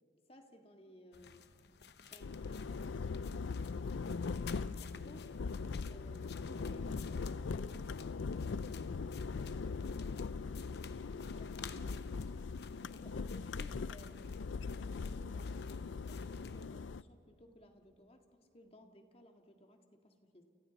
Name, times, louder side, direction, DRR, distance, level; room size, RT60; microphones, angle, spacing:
voice 1, 0.3-1.5 2.0-5.3 5.6-8.4 11.3-12.1 12.8-14.2 14.5-20.4, equal, 30° left, 4 dB, 1.8 m, -59 dB
sound 1, 1.1-16.7, left 6 dB, 60° left, 0.9 m, -55 dB
sound 2, 2.2-17.0, left 4 dB, 85° left, 0.5 m, -40 dB
29.0 x 29.0 x 4.1 m, 2.8 s
head